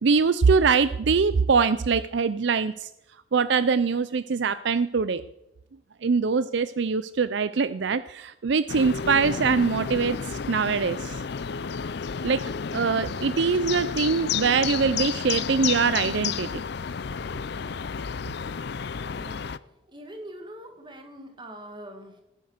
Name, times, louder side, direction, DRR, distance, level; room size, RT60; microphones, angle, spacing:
voice 1, 0.0-2.9 3.3-5.2 6.0-10.2 10.5-11.2 12.2-12.4 12.7-16.6, right 5 dB, 60° right, 15 dB, 0.5 m, -23 dB
sound 1, 8.7-19.6, left 6 dB, 55° left, 0.5 m, -31 dB
voice 2, 19.1-19.4 19.8-22.2, right 1 dB, 25° right, 4 dB, 2.1 m, -43 dB
17.5 x 10.0 x 6.5 m, 0.89 s
head